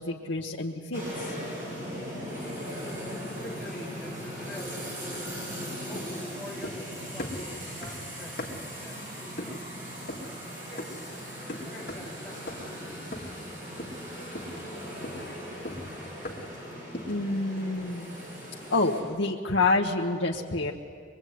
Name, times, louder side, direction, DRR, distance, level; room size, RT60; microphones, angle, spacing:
voice 1, 0.0-1.3 17.1-18.1 18.7-20.7, left 3 dB, 75° left, -1 dB, 1.3 m, -28 dB
sound 1, 0.9-19.0, equal, 40° right, 7.9 m, -39 dB
voice 2, 3.3-4.9 5.5-9.7 10.6-13.1, left 1 dB, ahead, -6 dB, 4.7 m, -46 dB
sound 2, 5.9-6.9 7.2-8.8 9.4-9.7 10.1-10.4 10.8-11.1 11.5-12.2 12.5-12.8 13.1-13.5 13.8-14.1 14.3-16.6 16.9-17.3, left 1 dB, 50° left, 2.7 m, -39 dB
24.5 x 22.0 x 9.4 m, 2.2 s
head